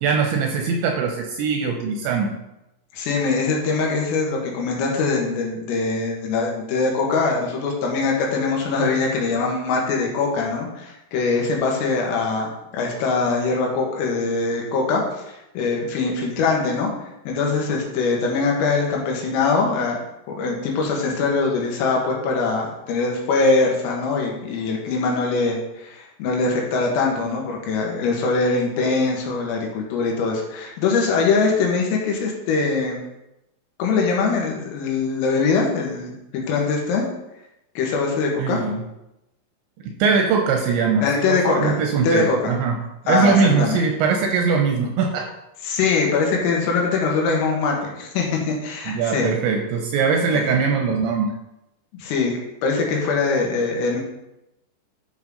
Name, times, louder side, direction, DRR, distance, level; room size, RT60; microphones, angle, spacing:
voice 1, 0.0-2.3 38.4-38.8 39.8-42.8 43.1-45.3 48.9-51.3, right 5 dB, 80° right, 3 dB, 2.8 m, -21 dB
voice 2, 2.9-16.9 17.3-20.0 20.3-33.0 33.8-37.0 37.8-38.6 41.0-41.8 42.0-42.5 43.1-43.8 45.6-49.3 50.3-50.4 52.0-54.0, left 4 dB, 80° left, -1 dB, 4.2 m, -22 dB
11.5 x 6.0 x 4.0 m, 0.90 s
omnidirectional pair, 5.9 m